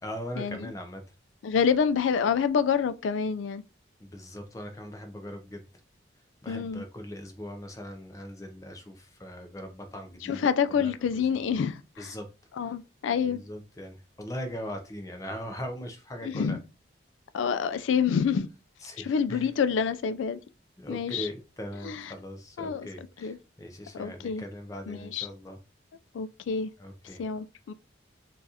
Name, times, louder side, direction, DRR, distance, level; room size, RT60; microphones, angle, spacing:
voice 1, 0.0-1.0 4.0-5.6 6.4-10.4 10.7-11.6 12.0-12.3 12.6-12.7 13.2-16.6 18.8-19.5 20.8-25.6 26.8-27.2, equal, 15° left, 0.5 m, -40 dB
voice 2, 1.4-3.6 6.5-6.8 10.2-12.1 12.6-13.4 16.2-16.6 17.3-18.5 19.0-20.4 20.9-21.3 21.8-22.0 22.6-22.9 23.2-23.4 23.9-24.4 24.9-25.3 26.1-26.7 27.2-27.7, left 6 dB, 85° left, 0.3 m, -27 dB
3.9 x 2.4 x 2.7 m
head